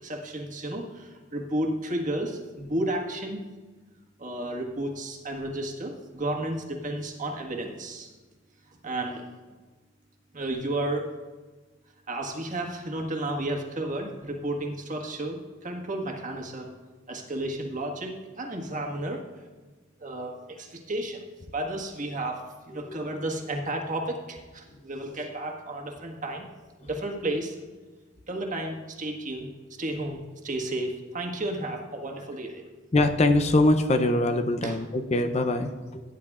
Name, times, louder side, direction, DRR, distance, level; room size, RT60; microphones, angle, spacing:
voice 1, 0.0-3.4 4.2-8.1 8.7-9.3 10.3-11.1 12.1-16.7 17.1-19.3 20.0-21.2 21.5-26.5 26.8-27.6 28.3-29.5 29.8-32.7 34.6-34.7, right 1 dB, 45° right, 2 dB, 1.6 m, -32 dB
voice 2, 32.9-36.0, left 2 dB, 35° left, 7 dB, 0.6 m, -23 dB
17.5 x 10.0 x 2.4 m, 1.3 s
head